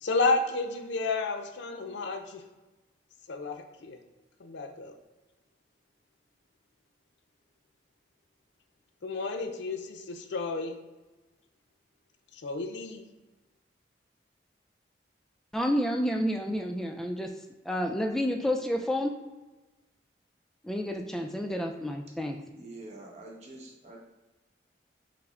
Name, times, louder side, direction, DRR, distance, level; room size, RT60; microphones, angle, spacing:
voice 1, 0.0-2.4 3.3-4.0 4.4-4.9 9.0-10.7 12.3-13.1, left 3 dB, 85° left, 6 dB, 0.5 m, -31 dB
voice 2, 15.5-17.3 17.7-19.1 20.6-22.4, equal, ahead, 2 dB, 0.3 m, -29 dB
voice 3, 22.6-24.0, right 2 dB, 40° right, 0 dB, 0.8 m, -46 dB
5.7 x 2.1 x 3.6 m, 1.1 s
head